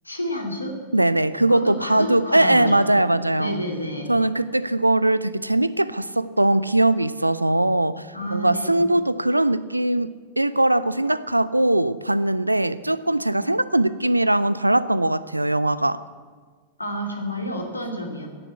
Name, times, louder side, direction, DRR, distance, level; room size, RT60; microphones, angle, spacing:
voice 1, 0.0-0.7 1.5-2.8 3.4-4.1 8.1-8.7 13.3-13.4 16.8-18.3, equal, 85° left, 2 dB, 2.6 m, -30 dB
voice 2, 0.9-3.6 4.1-10.1 10.4-16.0, right 1 dB, 85° right, 17 dB, 0.5 m, -21 dB
16.0 x 10.5 x 8.2 m, 1.5 s
figure-of-eight pair, 90°, 0 cm